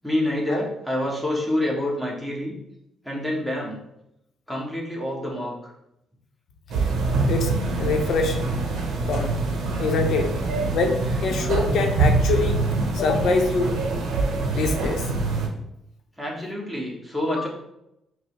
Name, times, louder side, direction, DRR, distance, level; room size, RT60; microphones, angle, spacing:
voice 1, 0.0-2.5 3.0-3.8 4.5-5.7 10.4-10.5 11.0-11.2 16.2-17.5, left 1 dB, ahead, -4 dB, 1.2 m, -27 dB
sound 1, 6.7-15.5, right 3 dB, 75° right, 0.6 m, -24 dB
voice 2, 7.8-8.5 9.1-9.3 9.8-10.3 10.7-12.6 12.9-13.7 14.5-15.0, left 3 dB, 70° left, 3 dB, 0.6 m, -24 dB
5.1 x 2.0 x 3.1 m, 0.83 s
cardioid pair, 90°, 0 cm